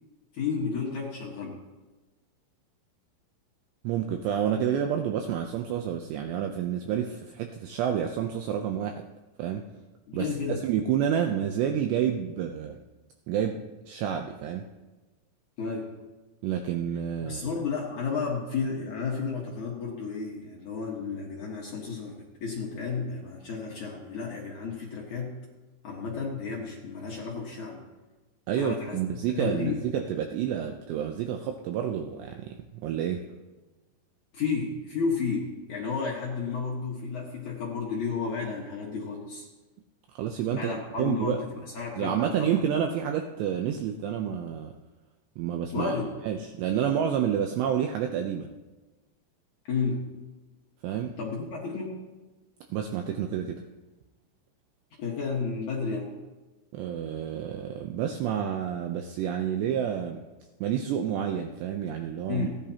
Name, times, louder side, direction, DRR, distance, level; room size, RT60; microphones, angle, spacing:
voice 1, 0.3-1.6 10.1-10.6 15.6-15.9 17.2-25.4 25.8-27.8 28.5-29.0 29.3-29.8 34.3-39.5 40.5-42.5 45.7-46.2 49.7-50.1 51.2-52.0 55.0-56.1 62.3-62.6, left 5 dB, 85° left, -3 dB, 1.6 m, -32 dB
voice 2, 3.8-9.0 9.4-9.6 10.1-12.8 13.3-13.6 13.9-14.6 16.4-17.5 28.5-33.2 40.2-41.4 42.0-44.7 45.4-46.0 46.2-48.5 50.8-51.1 52.7-53.6 56.7-60.2 60.6-62.5, right 9 dB, 90° right, 4 dB, 2.4 m, -29 dB
29.5 x 10.5 x 2.9 m, 1.2 s
omnidirectional pair, 5.9 m